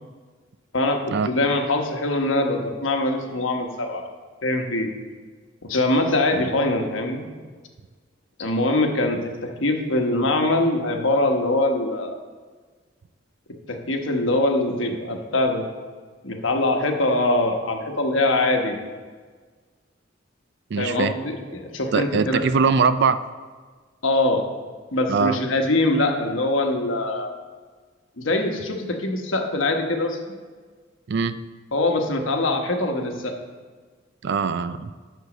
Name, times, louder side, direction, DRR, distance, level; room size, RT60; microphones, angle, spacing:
voice 1, 0.7-4.1 4.4-4.9 5.6-7.3 8.4-12.2 13.7-15.6 16.2-18.8 20.8-22.4 24.0-24.4 24.9-27.3 28.2-30.2 31.7-33.3, left 2 dB, 75° left, 3 dB, 1.2 m, -23 dB
voice 2, 20.7-21.1 21.9-23.2 25.1-25.4 31.1-31.4 34.2-34.9, right 5 dB, 60° right, 13 dB, 0.4 m, -21 dB
8.0 x 6.2 x 6.2 m, 1.5 s
head